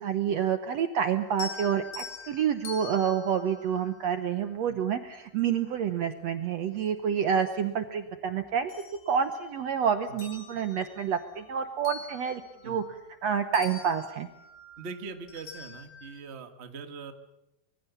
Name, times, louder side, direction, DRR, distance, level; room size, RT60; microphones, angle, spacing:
voice 1, 0.0-8.7 9.1-12.8 13.2-14.3, right 8 dB, 75° right, 9 dB, 1.6 m, -28 dB
sound 1, 1.3-4.6 6.2-6.3 6.9-8.1 8.4-9.7 10.0-13.2 13.5-16.2, left 4 dB, 80° left, 5.7 m, -45 dB
voice 2, 14.8-17.1, right 4 dB, 60° right, 7 dB, 0.6 m, -42 dB
25.0 x 22.5 x 7.1 m, 0.88 s
omnidirectional pair, 4.3 m